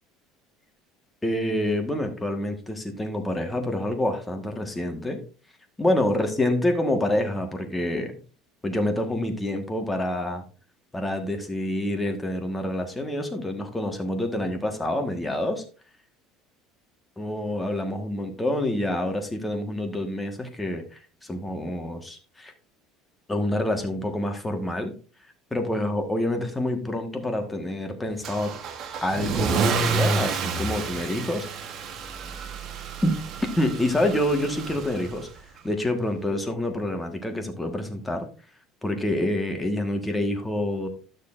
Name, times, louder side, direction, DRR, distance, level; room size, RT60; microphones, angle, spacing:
voice 1, 1.2-5.2 5.8-8.1 8.6-10.4 10.9-15.6 17.2-22.5 23.3-24.9 25.5-28.5 29.0-31.5 33.0-33.2 33.6-35.3 35.6-38.3 38.8-40.9, left 1 dB, 10° left, 5 dB, 1.4 m, -27 dB
Car / Engine starting / Accelerating revving vroom, 28.2-35.3, right 4 dB, 45° right, 1.2 m, -29 dB
12.0 x 6.6 x 2.5 m, 0.36 s
cardioid pair, 125°, 0 cm